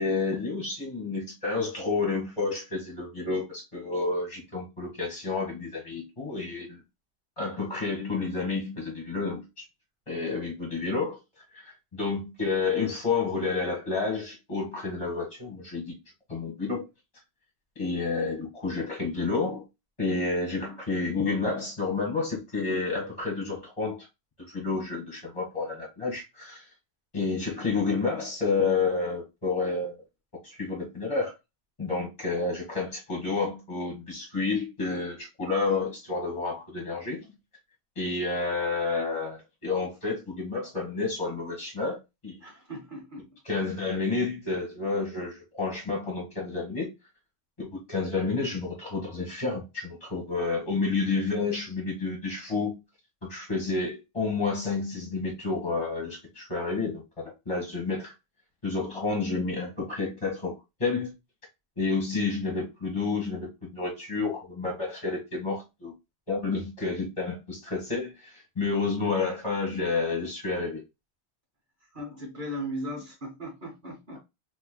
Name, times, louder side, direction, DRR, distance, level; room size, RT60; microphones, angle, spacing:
voice 1, 0.0-6.8 7.4-9.6 10.1-11.2 11.5-15.9 16.3-16.8 17.7-19.6 20.0-24.1 24.5-26.6 27.1-30.0 30.4-31.3 31.8-37.2 37.9-42.0 42.2-42.4 43.4-46.9 47.6-52.8 53.2-58.1 58.6-60.5 60.8-61.1 61.8-65.9 66.3-70.8, left 4 dB, 30° left, 1.4 m, -30 dB
voice 2, 42.4-43.3 71.9-74.2, equal, 50° right, 1.1 m, -37 dB
4.4 x 2.7 x 2.2 m
omnidirectional pair, 1.1 m